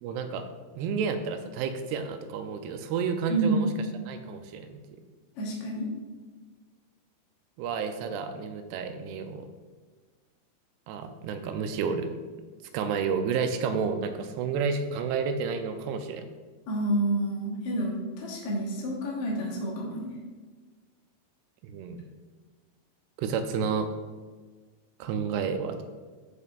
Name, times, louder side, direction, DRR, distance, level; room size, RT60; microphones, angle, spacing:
voice 1, 0.0-0.5 0.7-3.7 4.1-4.8 7.6-9.5 10.9-12.1 12.7-16.3 21.6-22.0 23.2-23.9 25.0-25.8, right 6 dB, 85° right, 7 dB, 2.6 m, -30 dB
voice 2, 3.3-3.7 5.4-5.9 16.7-20.0, right 1 dB, 75° left, -3 dB, 1.4 m, -29 dB
15.0 x 5.3 x 2.4 m, 1.4 s
omnidirectional pair, 4.6 m